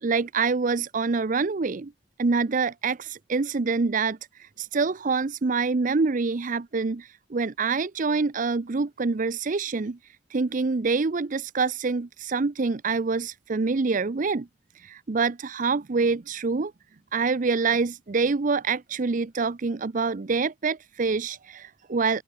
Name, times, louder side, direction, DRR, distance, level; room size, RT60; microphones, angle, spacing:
voice 1, 0.0-1.9 2.2-10.0 10.3-14.5 14.8-16.7 17.1-22.2, right 4 dB, 45° right, 0.6 m, -26 dB
open air
head